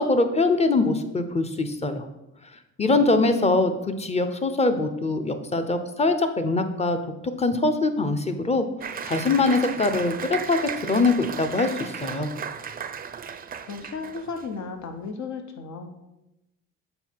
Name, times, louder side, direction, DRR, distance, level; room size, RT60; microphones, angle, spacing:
voice 1, 0.0-2.1 2.8-3.7 4.0-7.0 7.4-8.6 9.0-12.3, left 3 dB, 20° left, 8 dB, 0.7 m, -23 dB
voice 2, 2.8-3.6 13.6-15.9, left 4 dB, 65° left, 6 dB, 1.0 m, -35 dB
Applause, 8.8-14.5, right 7 dB, 30° right, 0.5 m, -35 dB
7.8 x 4.2 x 4.6 m, 0.93 s
cardioid pair, 90°, 30 cm